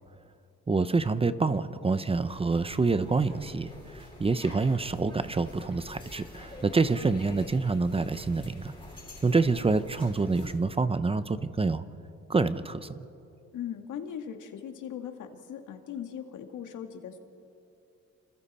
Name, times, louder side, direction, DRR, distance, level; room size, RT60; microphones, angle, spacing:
voice 1, 0.7-8.7 9.2-11.8 12.3-12.9, right 3 dB, 20° right, 12 dB, 0.7 m, -27 dB
sound 1, 2.1-10.5, left 1 dB, 15° left, 5.9 m, -47 dB
voice 2, 13.5-17.2, left 9 dB, 85° left, 5 dB, 2.0 m, -39 dB
29.5 x 26.5 x 4.3 m, 2.6 s
cardioid pair, 125°, 30 cm